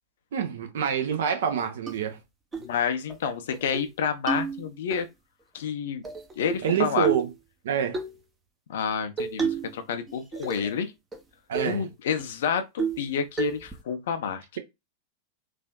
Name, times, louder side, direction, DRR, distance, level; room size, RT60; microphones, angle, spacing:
voice 1, 0.3-2.2 6.6-7.3 7.6-8.0 11.5-11.8, right 8 dB, 60° right, 0.7 m, -26 dB
sound 1, 1.9-2.0 2.5-2.7 3.1-3.2 3.5-3.9 4.3-5.0 6.0-6.7 7.0-7.4 7.9-8.1 9.2-9.8 10.1-10.8 11.1-11.2 11.5-11.8 12.2-12.3 12.8-13.1 13.4-13.8, right 5 dB, 15° right, 0.7 m, -31 dB
voice 2, 2.6-5.1 5.5-6.0 6.4-7.1 8.7-10.9 11.6-14.4, left 7 dB, 60° left, 0.6 m, -29 dB
3.3 x 2.5 x 2.3 m
figure-of-eight pair, 90°, 0 cm